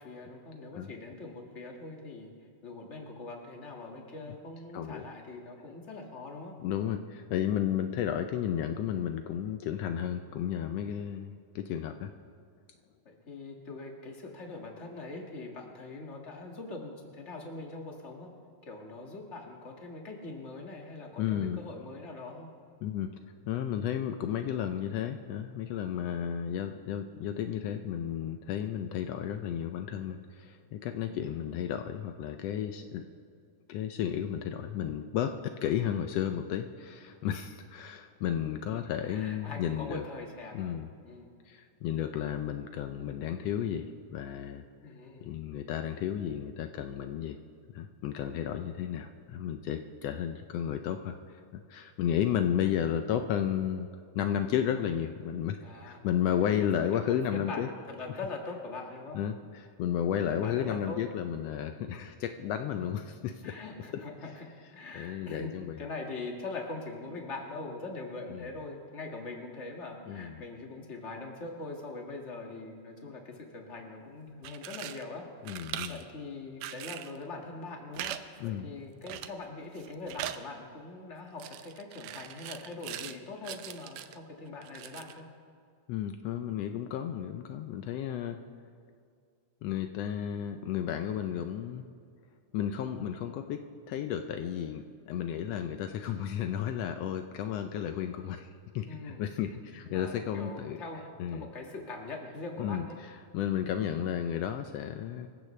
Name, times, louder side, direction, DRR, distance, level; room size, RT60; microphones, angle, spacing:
voice 1, 0.0-2.3 2.6-6.5 9.9-10.3 13.0-18.3 18.6-22.5 31.1-31.3 38.6-40.8 41.0-41.3 44.8-45.3 52.6-52.8 55.6-56.1 56.8-59.2 60.1-61.5 63.4-64.5 64.7-75.2 75.9-78.1 78.4-85.2 98.8-99.2 99.8-103.0, left 3 dB, 25° left, 0 dB, 1.6 m, -42 dB
voice 2, 4.7-5.0 6.6-12.1 21.2-21.6 22.8-23.1 23.5-33.0 33.7-40.0 40.5-40.9 41.5-44.6 45.2-47.4 47.7-53.9 54.1-55.6 55.8-57.7 59.1-63.5 64.9-65.9 68.3-68.4 70.1-70.4 75.4-76.0 78.4-78.7 85.9-88.4 89.6-91.8 92.5-98.5 98.7-100.8 101.2-101.5 102.6-105.3, left 9 dB, 90° left, 7 dB, 1.4 m, -33 dB
sound 1, 74.3-75.0 75.4-76.0 76.6-77.2 77.9-78.2 78.5-78.6 79.1-79.5 79.8-80.4 81.4-83.2 83.4-84.2 84.6-85.2, right 12 dB, 80° right, 1.6 m, -41 dB
25.5 x 15.0 x 3.3 m, 2.3 s
omnidirectional pair, 3.7 m